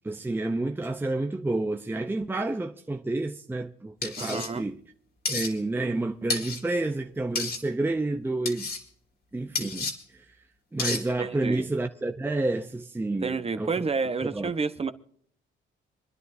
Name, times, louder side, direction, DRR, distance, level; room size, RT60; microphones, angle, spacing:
voice 1, 0.0-4.8 5.3-8.7 9.3-10.3 10.7-13.8 14.3-14.5, right 2 dB, 10° right, 0.7 m, -30 dB
sound 1, 4.0-4.5 5.3-5.5 6.3-6.6 7.4-7.6 8.5-8.8 9.6-9.9 10.8-11.0, left 4 dB, 50° left, 2.9 m, -30 dB
voice 2, 4.2-4.7 11.2-11.7 13.1-14.9, right 4 dB, 30° right, 1.1 m, -30 dB
27.5 x 10.5 x 2.7 m
cardioid pair, 90°, 20 cm